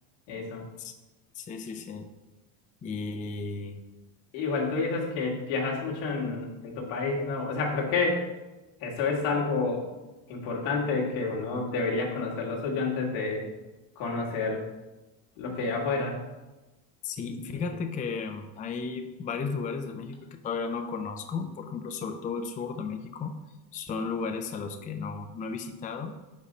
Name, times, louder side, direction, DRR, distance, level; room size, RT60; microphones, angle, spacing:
voice 1, 0.3-0.6 4.3-8.2 8.8-9.8 10.3-13.4 14.0-14.6 15.4-16.1 17.5-17.7, left 4 dB, 85° left, -2 dB, 1.8 m, -29 dB
voice 2, 1.3-2.1 2.8-3.8 17.0-23.4 23.7-26.1, left 5 dB, 15° left, 6 dB, 0.4 m, -34 dB
5.3 x 4.2 x 5.0 m, 1.1 s
supercardioid pair, 105°, 50 cm